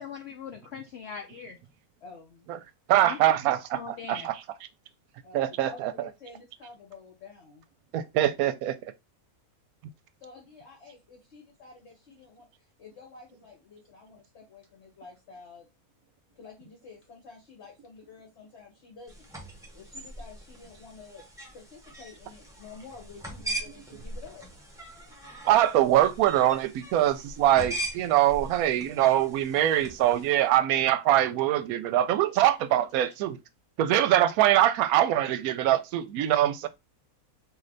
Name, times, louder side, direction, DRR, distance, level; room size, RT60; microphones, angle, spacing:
voice 1, 0.0-1.6 3.0-3.2 3.7-4.3, left 6 dB, 70° left, 0.6 m, -40 dB
voice 2, 2.0-2.5 5.2-7.7 10.2-12.5 12.8-15.7 16.3-19.2 19.7-21.3 21.5-24.5, left 4 dB, 50° left, 1.4 m, -49 dB
voice 3, 2.9-3.6 3.9-4.3 5.3-5.9 7.9-8.8 25.5-33.4 33.8-36.7, right 12 dB, 75° right, 1.0 m, -23 dB
sound 1, 19.1-30.4, right 1 dB, 5° right, 0.7 m, -41 dB
3.2 x 2.7 x 3.8 m
omnidirectional pair, 1.6 m